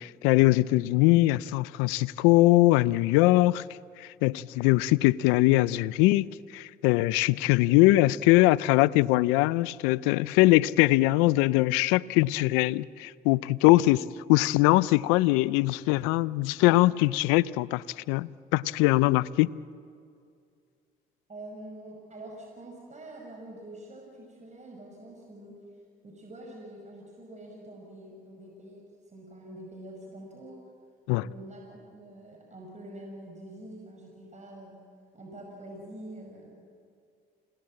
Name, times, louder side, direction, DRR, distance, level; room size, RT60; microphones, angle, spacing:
voice 1, 0.0-3.6 4.0-6.3 6.5-19.5 31.1-31.3, left 19 dB, 90° left, 0.5 m, -22 dB
voice 2, 21.3-25.6 26.0-30.6 31.1-34.8 35.1-36.5, right 1 dB, 35° right, 5.9 m, -45 dB
28.5 x 19.0 x 7.7 m
supercardioid pair, 60°, 21 cm